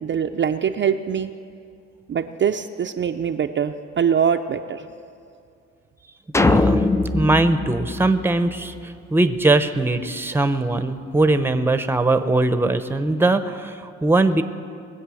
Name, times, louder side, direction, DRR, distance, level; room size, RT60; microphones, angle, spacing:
voice 1, 0.0-1.3 2.1-4.8, right 7 dB, 40° right, 5 dB, 0.5 m, -23 dB
sound 1, 6.3-8.8, left 2 dB, 10° left, 0.4 m, -21 dB
voice 2, 6.4-6.8 7.1-14.4, right 2 dB, 5° right, 10 dB, 0.7 m, -20 dB
21.0 x 7.8 x 6.3 m, 2.4 s
cardioid pair, 90°, 30 cm